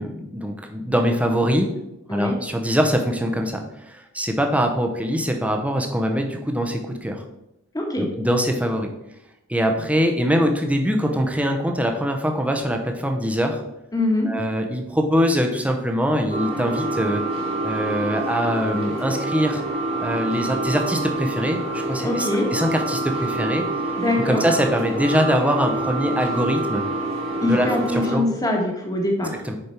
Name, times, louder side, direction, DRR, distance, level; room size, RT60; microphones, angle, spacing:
voice 1, 0.0-1.7 2.1-7.2 8.2-8.9 9.5-13.6 14.3-17.2 17.6-19.6 20.0-23.6 24.2-26.9 27.4-27.7 27.9-28.2 29.4-29.6, equal, 5° right, 3 dB, 0.7 m, -23 dB
voice 2, 7.7-8.1 13.9-14.3 22.0-22.5 24.0-24.4 27.4-29.4, left 1 dB, 15° left, 1 dB, 1.4 m, -23 dB
sound 1, 16.3-28.2, right 2 dB, 30° right, 1.4 m, -27 dB
6.7 x 5.2 x 4.4 m, 0.89 s
head